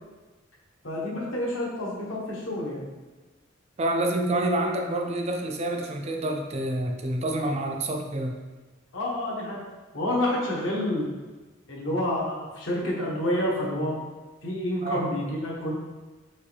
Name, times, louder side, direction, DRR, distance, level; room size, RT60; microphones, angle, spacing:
voice 1, 0.8-2.9 8.9-9.6 9.9-11.1 11.7-14.0 14.4-15.7, left 1 dB, 75° left, -3 dB, 1.1 m, -28 dB
voice 2, 3.8-8.4 14.8-15.1, right 1 dB, 30° right, 3 dB, 0.4 m, -27 dB
4.5 x 3.0 x 3.4 m, 1.2 s
head